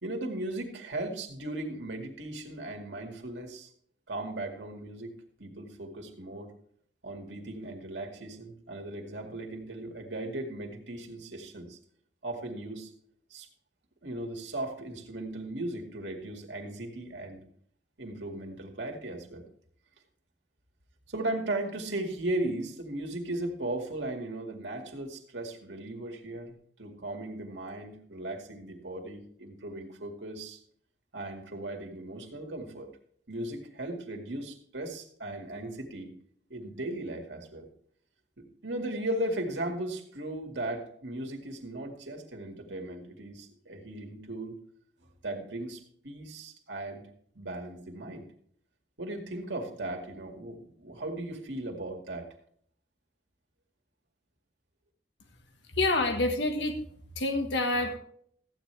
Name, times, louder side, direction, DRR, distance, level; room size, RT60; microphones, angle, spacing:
voice 1, 0.0-3.7 4.1-6.5 7.0-11.8 12.2-12.9 13.3-13.5 14.0-17.4 18.0-19.4 21.1-30.6 31.1-32.9 33.3-36.1 36.5-37.7 38.4-44.6 45.2-47.0 47.3-48.2 49.0-52.3, right 1 dB, 75° right, 2 dB, 2.2 m, -37 dB
voice 2, 55.7-56.7 57.1-58.0, left 2 dB, 75° left, 5 dB, 1.5 m, -27 dB
14.5 x 9.2 x 3.4 m, 0.62 s
head